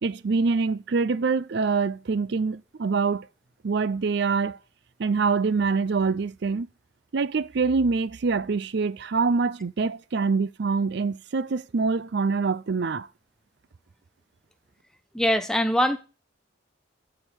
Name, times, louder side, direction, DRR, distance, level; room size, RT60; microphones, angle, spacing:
voice 1, 0.0-3.3 3.6-4.6 5.0-6.7 7.1-13.1, right 4 dB, 60° right, 0.5 m, -25 dB
voice 2, 15.1-16.0, equal, 5° left, 0.9 m, -22 dB
12.5 x 5.0 x 7.2 m
head